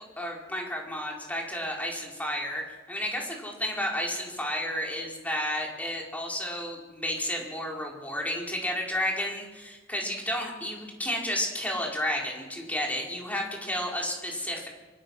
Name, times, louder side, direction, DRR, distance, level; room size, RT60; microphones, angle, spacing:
voice 1, 0.0-14.7, left 1 dB, 10° left, -1 dB, 4.8 m, -32 dB
25.0 x 24.0 x 6.4 m, 1.2 s
head